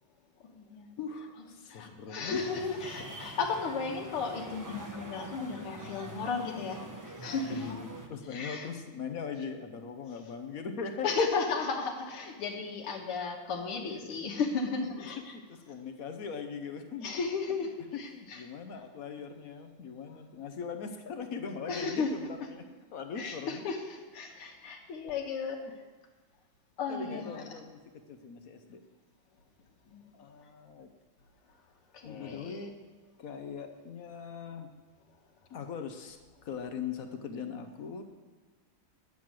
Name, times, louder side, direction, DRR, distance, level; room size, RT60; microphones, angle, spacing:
voice 1, 0.4-0.9 1.7-7.8 8.3-8.7 11.0-15.3 17.0-18.4 21.7-22.2 23.2-25.6 26.8-27.4 29.9-30.0 31.9-32.6, left 4 dB, 80° left, 1 dB, 2.2 m, -34 dB
voice 2, 1.0-2.4 7.4-11.2 13.9-14.2 15.3-17.1 17.9-22.6 22.9-23.6 26.9-27.8 28.1-28.8 30.1-30.9 32.0-32.7 33.2-34.7 35.5-38.0, left 6 dB, 55° left, 7 dB, 1.0 m, -40 dB
sound 1, 2.3-8.1, right 1 dB, 25° right, 0.3 m, -45 dB
10.0 x 7.7 x 7.5 m, 1.4 s
omnidirectional pair, 2.4 m